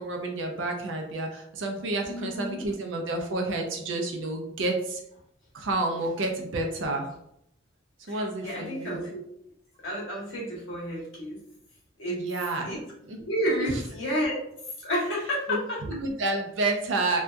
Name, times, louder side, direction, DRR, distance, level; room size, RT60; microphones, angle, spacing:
voice 1, 0.0-5.0 5.5-7.1 8.1-9.0 12.1-13.2 13.6-13.8 15.5-17.2, right 2 dB, 65° right, 2 dB, 0.5 m, -30 dB
voice 2, 2.1-2.6 8.1-9.2 9.8-11.4 12.0-12.2 12.6-12.8 13.2-14.4 14.8-15.8, equal, 80° left, -4 dB, 1.0 m, -30 dB
2.7 x 2.2 x 2.2 m, 0.77 s
head